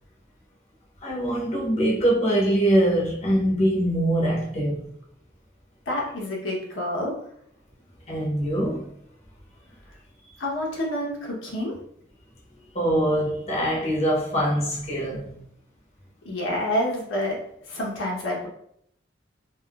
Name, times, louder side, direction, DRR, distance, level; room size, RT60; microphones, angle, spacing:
voice 1, 1.0-4.9 8.1-8.9 12.7-15.4, right 1 dB, 35° left, 0.7 m, -23 dB
voice 2, 5.9-7.1 10.4-11.7 16.2-17.4 17.7-18.5, left 1 dB, 90° left, 1.0 m, -28 dB
3.4 x 2.5 x 2.3 m
head